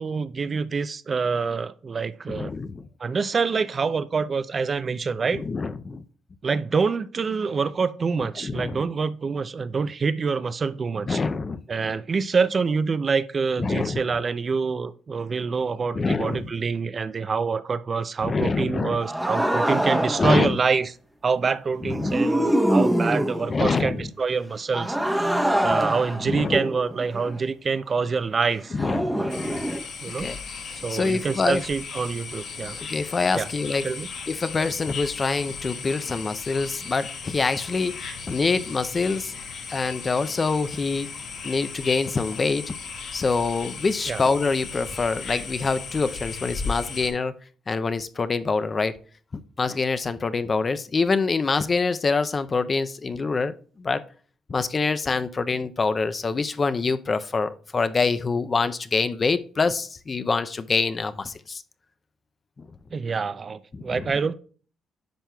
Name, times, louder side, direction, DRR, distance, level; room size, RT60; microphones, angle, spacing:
voice 1, 0.0-2.5 3.0-5.4 6.4-11.2 11.7-20.9 21.2-25.0 25.6-28.7 30.0-30.3 30.7-32.8 33.4-33.5 33.8-34.1 44.1-44.2 62.9-64.3, right 5 dB, 40° right, 0.4 m, -26 dB
voice 2, 2.3-2.9 5.3-6.0 8.4-8.8 11.1-11.6 13.6-14.0 15.9-16.5 18.2-19.0 20.2-20.6 21.8-22.2 23.5-24.1 26.2-26.6 28.7-29.7 30.2-30.4 30.7-31.6 32.7-33.8 34.3-39.3 39.7-41.1 41.4-42.7 43.1-47.3 47.7-48.9 49.6-54.0 54.5-61.6 62.6-62.7 63.7-64.0, left 4 dB, 35° left, 0.5 m, -25 dB
sound 1, 19.0-20.4 21.9-23.6 24.7-27.4 28.8-29.8, right 1 dB, 5° right, 0.8 m, -24 dB
sound 2, 29.3-47.1, left 5 dB, 75° left, 1.6 m, -36 dB
10.0 x 5.9 x 2.3 m
cardioid pair, 90°, 0 cm